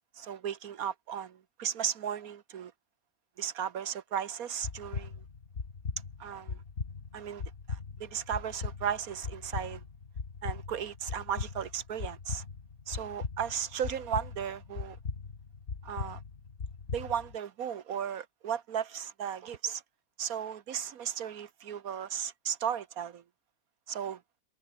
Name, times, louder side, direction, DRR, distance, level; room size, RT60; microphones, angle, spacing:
voice 1, 0.2-2.7 3.4-5.1 6.2-6.6 7.1-7.4 7.7-9.8 10.4-12.4 12.9-15.0 15.8-16.2 16.9-19.8 20.2-23.2 23.9-24.2, right 8 dB, 85° right, 1.5 m, -35 dB
sound 1, 4.6-17.3, left 5 dB, 50° left, 2.0 m, -40 dB
omnidirectional pair, 1.5 m